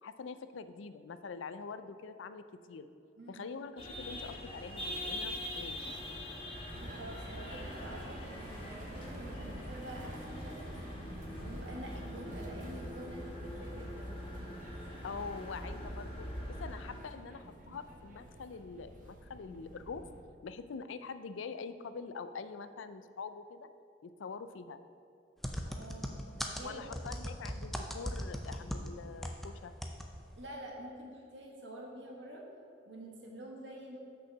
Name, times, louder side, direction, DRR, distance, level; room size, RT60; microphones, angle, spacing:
voice 1, 0.0-2.9 3.3-6.0 15.0-20.0 20.4-23.7 24.0-24.8 26.6-29.7, left 5 dB, 85° left, 12 dB, 0.4 m, -44 dB
voice 2, 3.2-3.5 6.9-10.6 11.4-14.2 25.6-26.1 26.4-26.9 30.4-32.4 32.8-34.0, right 1 dB, 75° right, -1 dB, 1.5 m, -47 dB
sound 1, 3.8-17.0, left 1 dB, 30° left, 1.0 m, -43 dB
sound 2, 6.7-20.2, right 1 dB, 40° right, 0.8 m, -48 dB
sound 3, 25.4-29.5 29.8-30.1 30.3-30.4, equal, ahead, 0.4 m, -38 dB
6.2 x 5.7 x 6.6 m, 2.7 s
head